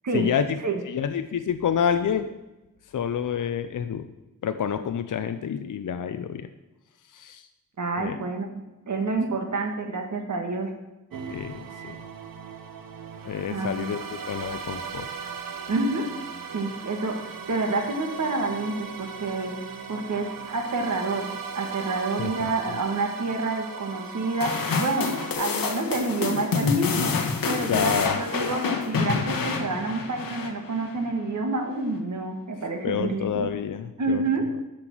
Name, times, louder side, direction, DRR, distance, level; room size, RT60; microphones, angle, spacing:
voice 1, 0.1-0.6 0.9-2.3 2.9-4.1 4.4-6.5 7.1-7.5 8.0-8.2 11.3-12.0 13.2-14.0 14.3-15.1 22.2-22.5 27.7-28.2 32.8-34.2, left 8 dB, 65° left, 9 dB, 0.7 m, -28 dB
voice 2, 7.8-10.7 13.5-13.9 15.7-16.1 16.5-19.6 19.9-27.1 27.5-33.5 34.0-34.5, right 3 dB, 60° right, 4 dB, 1.9 m, -28 dB
sound 1, 11.1-25.3, right 6 dB, 80° right, 1.1 m, -38 dB
sound 2, 24.4-30.9, left 5 dB, 85° left, 1.4 m, -28 dB
13.0 x 6.0 x 6.1 m, 1.0 s
wide cardioid pair, 115°, 33 cm